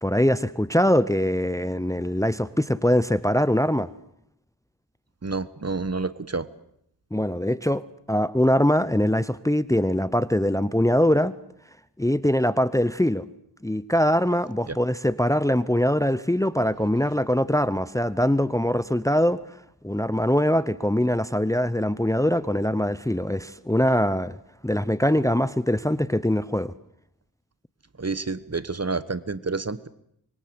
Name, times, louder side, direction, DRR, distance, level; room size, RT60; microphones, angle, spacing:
voice 1, 0.0-3.9 7.1-7.8 8.1-11.3 12.0-13.2 13.6-19.4 19.8-24.4 24.6-26.7, equal, 10° left, 0.9 m, -22 dB
voice 2, 5.2-6.5 28.0-29.9, right 3 dB, 35° right, 1.4 m, -29 dB
25.5 x 22.5 x 7.9 m
cardioid pair, 45°, 42 cm